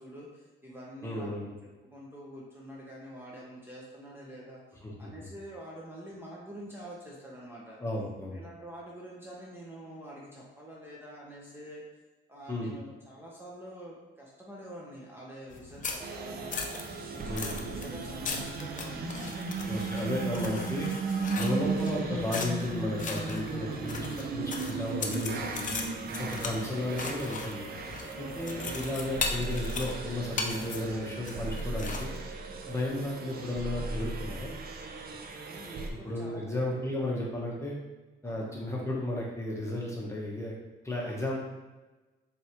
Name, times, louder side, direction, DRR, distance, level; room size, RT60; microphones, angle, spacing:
voice 1, 0.0-4.6 5.0-7.8 8.3-11.8 12.3-16.7 17.0-19.5 23.4-24.1 26.6-26.9 28.1-28.6 35.5-36.9 38.2-38.7 41.0-41.4, right 1 dB, 10° right, -5 dB, 0.9 m, -47 dB
voice 2, 1.0-1.5 4.8-5.1 7.8-8.4 12.5-12.7 17.3-17.5 19.7-20.9 21.3-24.1 24.3-25.7 26.2-27.7 28.2-32.1 32.7-34.5 36.0-37.8 38.2-40.5 40.8-41.4, left 1 dB, 15° left, -3 dB, 1.1 m, -33 dB
sound 1, 15.5-32.2, left 4 dB, 40° left, 0.6 m, -39 dB
sound 2, 16.0-35.9, right 4 dB, 50° right, 0.6 m, -36 dB
4.3 x 3.3 x 3.0 m, 1.1 s
cardioid pair, 90°, 20 cm